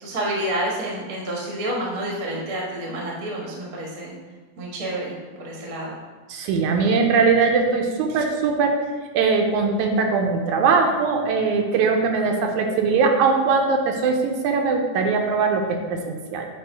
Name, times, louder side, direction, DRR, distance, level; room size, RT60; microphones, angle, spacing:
voice 1, 0.0-4.1 4.6-5.1 5.4-5.9, right 1 dB, 45° right, -3 dB, 1.1 m, -29 dB
voice 2, 6.3-8.8 9.1-16.5, right 4 dB, 85° right, 3 dB, 2.0 m, -21 dB
8.0 x 3.6 x 3.3 m, 1.3 s
omnidirectional pair, 3.4 m